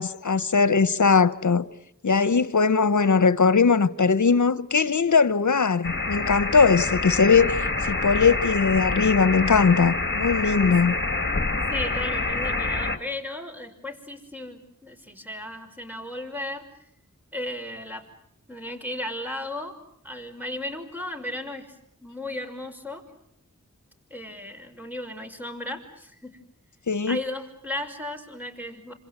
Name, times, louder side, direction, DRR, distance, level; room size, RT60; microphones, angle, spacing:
voice 1, 0.0-1.7 2.0-10.9 26.9-27.2, left 5 dB, 70° left, 1.1 m, -20 dB
sound 1, 5.8-13.0, left 3 dB, 35° left, 2.3 m, -27 dB
voice 2, 11.7-16.7 17.3-18.0 18.5-19.8 20.0-21.7 22.0-23.0 24.1-26.4 27.1-28.9, left 1 dB, 5° right, 5.7 m, -35 dB
27.0 x 26.5 x 8.1 m
wide cardioid pair, 45°, 31 cm